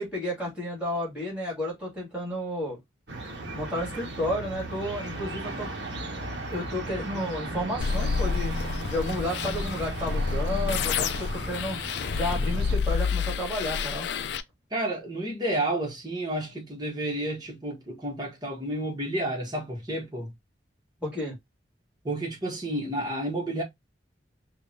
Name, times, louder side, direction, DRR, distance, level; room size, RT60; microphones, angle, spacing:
voice 1, 0.0-2.8 3.5-5.7 6.5-8.5 8.9-11.8 12.1-14.1 21.0-21.4, left 1 dB, 5° right, 2.8 m, -32 dB
sound 1, 3.1-12.8, right 2 dB, 65° right, 1.1 m, -36 dB
sound 2, 7.8-14.4, left 5 dB, 60° left, 0.4 m, -29 dB
voice 2, 14.7-20.3 22.0-23.6, right 1 dB, 20° right, 1.5 m, -31 dB
5.1 x 2.6 x 2.9 m
head